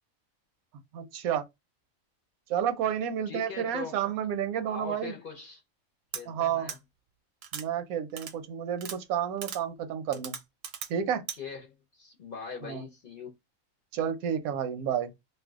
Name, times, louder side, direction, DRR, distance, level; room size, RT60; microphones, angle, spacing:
voice 1, 0.9-1.4 2.5-5.1 6.3-6.7 7.5-10.4 10.9-11.2 12.6-12.8 13.9-15.1, right 9 dB, 85° right, 1.0 m, -30 dB
voice 2, 3.3-4.0 4.6-5.6 6.1-6.8 11.0-13.3, left 6 dB, 55° left, 0.6 m, -42 dB
sound 1, 6.1-6.2 6.7-6.8 7.4-7.6 8.2-8.3 8.8-9.0 9.4-9.6 10.1-10.9 11.3-11.4, right 7 dB, 65° right, 0.7 m, -38 dB
2.6 x 2.1 x 3.4 m
omnidirectional pair, 1.5 m